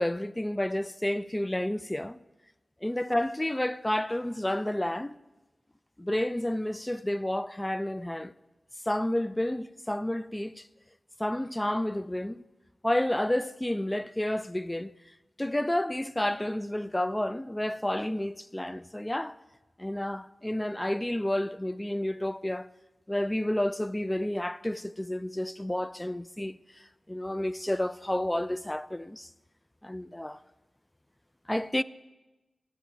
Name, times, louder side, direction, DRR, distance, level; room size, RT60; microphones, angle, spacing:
voice 1, 0.0-2.2 2.8-5.2 6.0-8.3 8.9-10.7 11.2-12.4 12.8-14.9 15.4-19.4 19.8-22.7 23.1-29.3 29.8-30.4 31.5-31.8, left 1 dB, 15° left, 0.3 m, -30 dB
14.0 x 9.2 x 3.4 m
cardioid pair, 45°, 0 cm